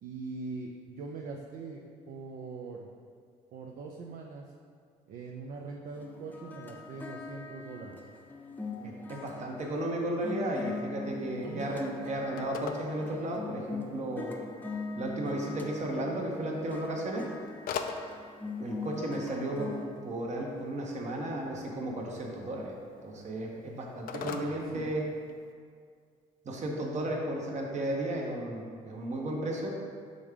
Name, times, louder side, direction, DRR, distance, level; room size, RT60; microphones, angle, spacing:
voice 1, 0.0-2.9 3.5-4.5 5.1-8.0 11.4-11.7 24.2-24.9, right 4 dB, 60° right, 0 dB, 0.6 m, -42 dB
sound 1, 5.9-19.8, left 3 dB, 10° left, 0.7 m, -42 dB
voice 2, 8.8-14.3 15.0-17.3 18.6-22.7 23.0-25.1 26.4-29.8, right 1 dB, 45° right, 0 dB, 1.1 m, -34 dB
Telephone, 11.0-25.5, left 6 dB, 65° left, 0.4 m, -46 dB
5.3 x 3.6 x 5.1 m, 2.1 s
supercardioid pair, 80°, 16 cm